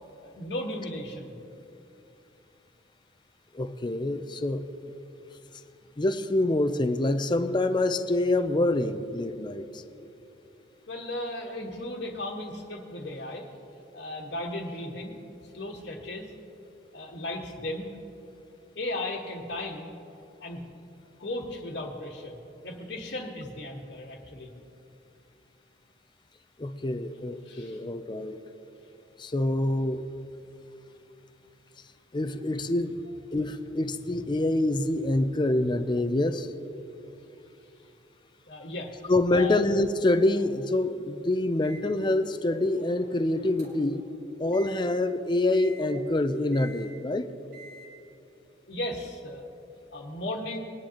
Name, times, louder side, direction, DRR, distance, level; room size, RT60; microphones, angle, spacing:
voice 1, 0.2-1.3 10.9-13.5 13.9-15.2 15.5-16.3 16.9-17.9 18.7-19.9 20.4-20.6 21.2-22.4 22.6-24.5 27.4-27.8 38.5-39.6 48.7-49.5 49.9-50.6, left 1 dB, 65° left, -3 dB, 1.4 m, -36 dB
voice 2, 3.5-4.7 6.0-9.8 26.6-28.4 29.2-30.0 32.1-33.0 33.3-36.5 39.1-44.0 44.4-47.3, left 2 dB, 25° left, 9 dB, 0.5 m, -26 dB
Microwave oven, 41.6-44.0 44.5-44.9 45.5-45.9 46.5-46.9 47.5-47.9, right 1 dB, 80° right, 3.0 m, -50 dB
21.5 x 10.5 x 2.9 m, 2.8 s
head